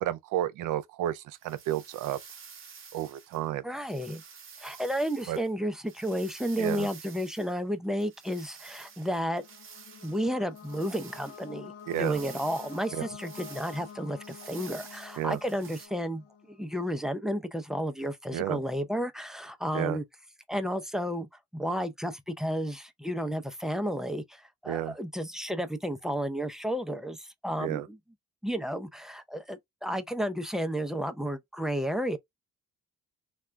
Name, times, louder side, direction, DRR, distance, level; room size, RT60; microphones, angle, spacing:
voice 1, 0.0-2.2 2.9-3.6 5.3-5.4 6.6-6.9 11.9-12.2 12.9-13.0 15.2-15.4 18.3-18.6 19.7-20.0 24.7-24.9 27.6-27.9, right 13 dB, 80° right, 0.5 m, -31 dB
sound 1, 1.3-3.5 3.8-7.6 8.0-15.9, right 6 dB, 40° right, 0.7 m, -50 dB
voice 2, 3.6-4.2 4.6-9.4 10.0-20.0 20.5-21.3 21.5-28.0 28.4-32.2, equal, ahead, 0.5 m, -32 dB
sound 2, 9.0-16.7, left 7 dB, 55° left, 0.6 m, -48 dB
2.3 x 2.2 x 3.2 m
supercardioid pair, 65°, 31 cm